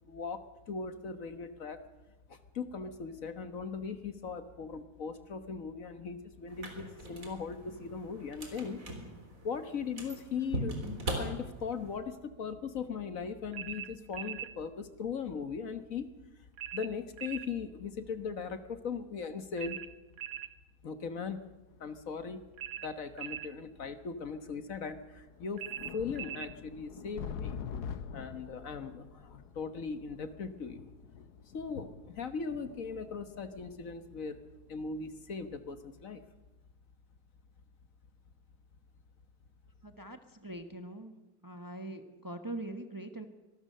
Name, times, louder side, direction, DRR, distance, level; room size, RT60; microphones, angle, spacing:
voice 1, 0.1-1.8 2.3-8.8 9.4-10.8 11.2-16.1 16.7-19.8 20.8-21.5 21.8-22.4 22.8-25.6 25.9-27.6 28.1-30.9 31.5-34.4 34.7-36.2, left 5 dB, 55° left, 9 dB, 1.5 m, -39 dB
sound 1, 6.5-12.0, right 1 dB, 55° right, 4.1 m, -40 dB
sound 2, 13.5-14.5 16.6-17.5 19.6-20.5 22.6-23.5 25.6-26.5, right 11 dB, 75° right, 1.5 m, -41 dB
sound 3, 21.7-21.8 22.8-22.9 24.1-24.2 24.5-24.6 25.1-35.2 35.6-35.8, left 7 dB, 75° left, 1.5 m, -46 dB
voice 2, 39.8-41.1 41.4-43.3, right 1 dB, 15° right, 7 dB, 1.1 m, -42 dB
25.0 x 19.5 x 6.6 m, 1.1 s
omnidirectional pair, 1.7 m